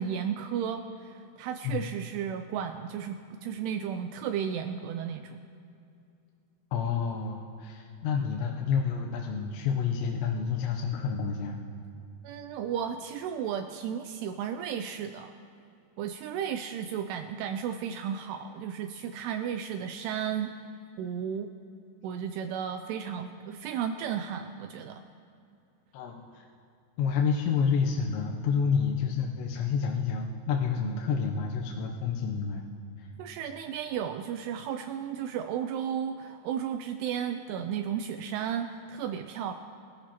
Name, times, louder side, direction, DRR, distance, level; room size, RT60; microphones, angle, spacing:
voice 1, 0.0-5.4 12.2-15.3 16.0-20.5 21.0-21.5 22.0-25.0 30.8-31.0 33.2-39.5, right 8 dB, 85° right, 7 dB, 2.4 m, -34 dB
voice 2, 6.7-11.6 25.9-26.5 27.0-32.7 33.0-33.1, left 6 dB, 80° left, 0 dB, 3.0 m, -29 dB
23.5 x 14.0 x 3.0 m, 2.6 s
omnidirectional pair, 5.2 m